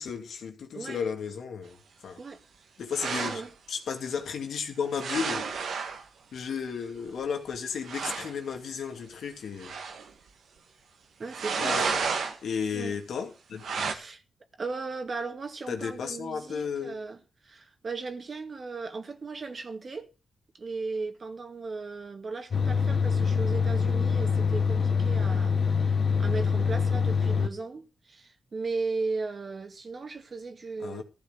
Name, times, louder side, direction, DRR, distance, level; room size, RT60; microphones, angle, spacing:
voice 1, 0.0-1.8 2.0-2.2 2.8-3.4 3.7-5.5 6.3-9.7 11.6-12.1 12.4-13.9 15.7-17.0 30.8-31.0, left 6 dB, 80° left, 2.5 m, -34 dB
voice 2, 0.7-1.1 2.2-2.4 3.2-3.5 11.2-11.7 12.7-13.0 13.9-14.2 14.6-20.1 20.6-31.0, right 4 dB, 45° right, 2.2 m, -36 dB
sound 1, 2.9-3.5 4.9-6.0 7.2-7.3 7.5-7.6 7.8-8.3 9.6-10.1 11.3-12.4 13.6-13.9, right 5 dB, 85° right, 1.9 m, -31 dB
sound 2, 22.5-27.5, left 5 dB, 55° left, 1.5 m, -25 dB
15.0 x 5.4 x 8.0 m
cardioid pair, 90°, 0 cm